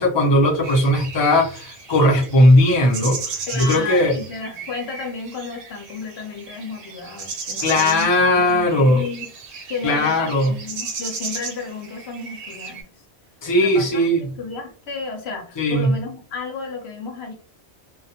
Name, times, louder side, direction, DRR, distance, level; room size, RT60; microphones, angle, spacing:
voice 1, 0.0-4.2 7.6-9.0 9.8-10.5 13.4-14.3 15.6-15.9, left 1 dB, 30° left, 0.6 m, -18 dB
sound 1, 0.6-12.8, right 4 dB, 80° right, 0.9 m, -35 dB
voice 2, 3.5-9.3 9.7-12.9 13.5-14.1 14.4-17.3, left 4 dB, 70° left, 0.9 m, -32 dB
2.3 x 2.1 x 2.7 m
omnidirectional pair, 1.2 m